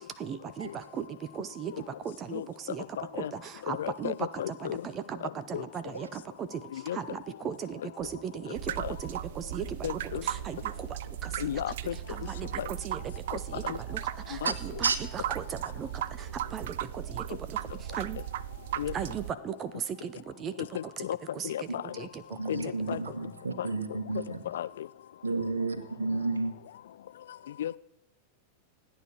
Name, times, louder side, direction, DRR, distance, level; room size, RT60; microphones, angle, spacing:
voice 1, 0.2-2.8 3.1-18.2 18.9-21.1 21.3-21.7 21.9-22.5 23.1-23.2, right 8 dB, 30° right, 0.8 m, -38 dB
voice 2, 3.0-3.3 3.7-4.8 5.5-5.6 6.7-7.0 8.8-8.9 9.8-10.2 11.4-12.0 12.6-12.7 13.6-13.8 14.4-14.5 18.8-18.9 20.7-21.2 21.4-21.8 22.5-23.0 23.6-23.7 24.5-24.9 27.6-27.8, left 11 dB, 60° left, 0.5 m, -34 dB
sound 1, 8.0-8.5 9.6-10.4 12.4-13.3, left 5 dB, 45° left, 6.6 m, -54 dB
sound 2, 8.6-19.3, right 13 dB, 55° right, 0.5 m, -37 dB
voice 3, 22.3-24.4 25.2-26.5, right 3 dB, 75° right, 1.8 m, -31 dB
27.5 x 9.2 x 4.7 m
figure-of-eight pair, 90°, 0 cm